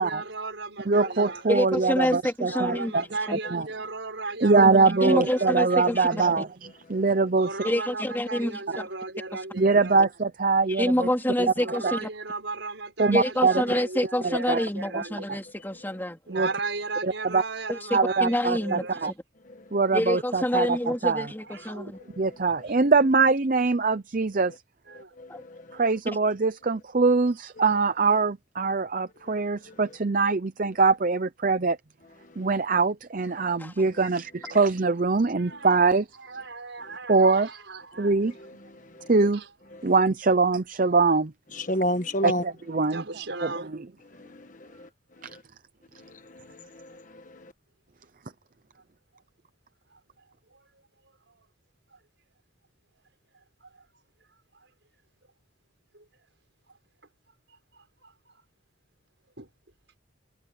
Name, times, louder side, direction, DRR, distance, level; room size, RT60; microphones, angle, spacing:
voice 1, 0.0-1.4 2.5-6.2 7.4-10.1 11.6-15.3 16.3-19.1 21.5-22.1 22.6-22.7 24.9-25.2 35.4-35.8 36.1-38.1 39.3-39.5 42.8-43.7 44.7-44.9 45.2-45.3 46.9-47.0 49.9-50.0 50.5-50.7 51.3-51.5 51.9-52.0 53.7-53.9 54.5-54.7 55.9-56.0 57.5-58.3 59.4-59.5, right 3 dB, 65° right, 6.5 m, -36 dB
voice 2, 0.9-3.0 3.5-3.7 4.4-6.5 6.9-7.5 9.6-11.1 11.8-11.9 13.0-13.5 14.2-14.6 14.9-15.0 15.3-15.4 16.3-16.5 17.0-17.4 17.9-19.1 19.7-20.8 21.0-21.3 22.2-24.5 25.7-31.8 32.4-36.1 37.1-37.5 38.0-38.3 39.1-39.4 39.8-41.3 42.2-43.0 43.4-43.6 45.2-45.3, right 4 dB, 45° right, 0.6 m, -23 dB
voice 3, 1.5-2.9 3.3-3.4 5.0-6.4 7.6-8.9 10.7-12.1 13.1-16.2 17.7-18.8 19.9-22.0 25.3-25.4 31.6-31.7 33.6-33.7, left 1 dB, 10° left, 3.5 m, -27 dB
voice 4, 25.2-25.8 29.3-29.4 29.7-29.8 38.9-39.1 41.5-42.4 44.2-44.9 45.3-45.4 46.0-47.5, equal, 40° left, 1.4 m, -32 dB
head